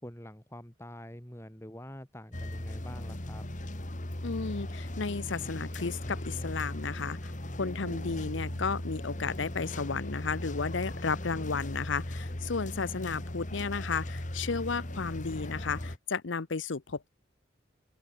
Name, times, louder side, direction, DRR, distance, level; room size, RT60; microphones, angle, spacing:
voice 1, 0.0-3.4 11.3-11.5, left 1 dB, 15° left, 2.6 m, -46 dB
sound 1, 2.3-16.0, left 1 dB, 40° left, 2.1 m, -38 dB
voice 2, 4.2-7.3 7.6-17.1, left 4 dB, 70° left, 0.8 m, -33 dB
sound 2, 5.1-5.2 5.5-5.6 5.9-6.0 6.6-7.1 7.8-12.6, right 1 dB, 85° right, 6.3 m, -52 dB
open air
head